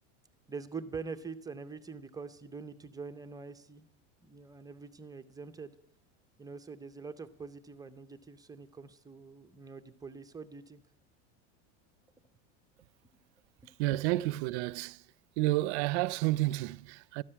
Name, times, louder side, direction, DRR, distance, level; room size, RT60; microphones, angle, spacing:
voice 1, 0.5-3.9 4.2-5.7 6.4-10.8 13.6-13.7, right 4 dB, 10° right, 0.5 m, -44 dB
voice 2, 13.8-15.0 15.4-17.2, right 18 dB, 65° right, 0.5 m, -30 dB
13.0 x 7.3 x 9.8 m
supercardioid pair, 135°, 36 cm